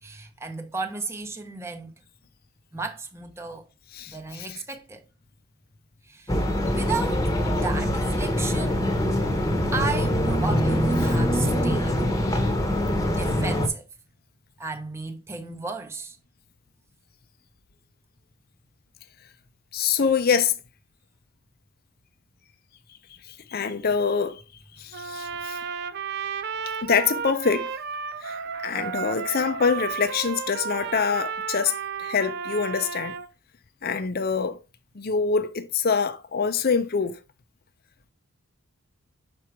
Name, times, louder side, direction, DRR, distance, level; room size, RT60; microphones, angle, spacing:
voice 1, 0.0-1.9 2.7-3.7 4.1-5.0 6.0-6.4 6.7-8.9 9.7-12.0 13.0-13.8 14.6-16.2, right 4 dB, 10° right, 0.8 m, -34 dB
voice 2, 3.9-4.6 19.7-20.5 23.3-24.4 24.8-25.6 26.8-27.7 28.2-28.4 28.6-33.1 33.8-34.6 35.0-37.2, left 6 dB, 45° left, 0.6 m, -25 dB
sound 1, 6.3-13.7, equal, 15° left, 1.0 m, -24 dB
Trumpet, 24.9-33.3, right 6 dB, 50° right, 0.5 m, -33 dB
6.1 x 4.5 x 4.7 m
head